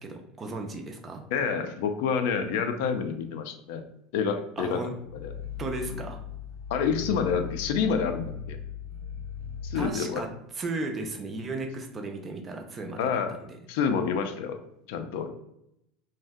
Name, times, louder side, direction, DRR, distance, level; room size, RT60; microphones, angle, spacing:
voice 1, 0.0-1.2 4.6-4.9 5.6-6.2 7.0-7.3 9.7-10.3 10.5-13.5, right 2 dB, 15° right, 4 dB, 0.3 m, -35 dB
voice 2, 1.3-3.8 4.1-4.9 5.2-5.3 6.7-8.6 9.6-10.2 13.0-13.4 13.7-14.6 14.9-15.3, left 6 dB, 65° left, 7 dB, 0.4 m, -28 dB
Growling, 5.0-9.9, left 7 dB, 90° right, 0.8 m, -38 dB
2.6 x 2.1 x 3.4 m, 0.79 s
cardioid pair, 175°, 0 cm